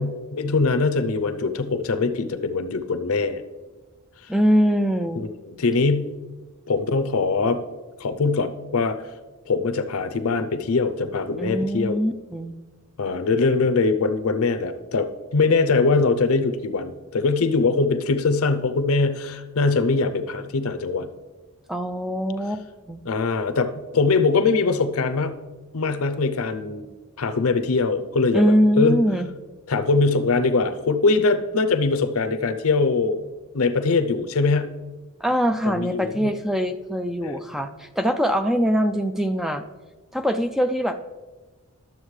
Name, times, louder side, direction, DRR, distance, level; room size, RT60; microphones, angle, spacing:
voice 1, 0.0-3.4 5.2-6.2 6.7-7.6 8.0-9.0 9.5-12.1 13.0-21.1 23.0-25.4 25.7-26.8 27.2-29.1 29.7-33.2 33.5-34.8 35.6-36.3 37.2-37.4, left 3 dB, 75° left, 10 dB, 0.6 m, -22 dB
voice 2, 4.3-5.2 11.4-12.5 21.7-23.0 28.3-29.3 35.2-39.6 40.1-41.0, equal, ahead, 7 dB, 0.3 m, -22 dB
12.0 x 7.2 x 3.2 m, 1.2 s
head